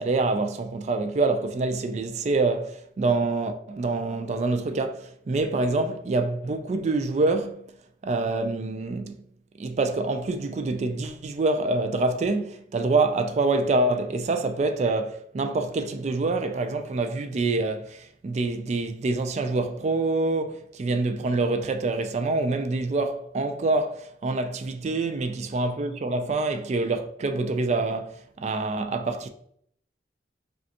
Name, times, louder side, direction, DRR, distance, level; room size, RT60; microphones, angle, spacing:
voice 1, 0.0-7.6 8.0-9.1 9.6-29.3, right 3 dB, 40° right, 0.3 m, -26 dB
5.0 x 2.3 x 2.7 m
head